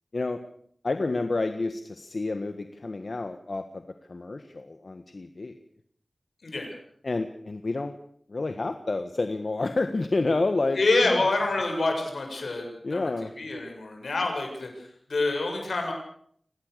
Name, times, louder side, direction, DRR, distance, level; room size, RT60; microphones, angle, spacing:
voice 1, 0.8-3.8 4.1-5.6 7.0-8.0 8.3-10.8 12.8-13.3, left 3 dB, 65° left, 8 dB, 1.5 m, -29 dB
voice 2, 6.4-6.8 10.7-15.9, left 2 dB, 85° left, 3 dB, 7.3 m, -27 dB
25.0 x 18.5 x 6.8 m, 0.63 s
wide cardioid pair, 50°, 0 cm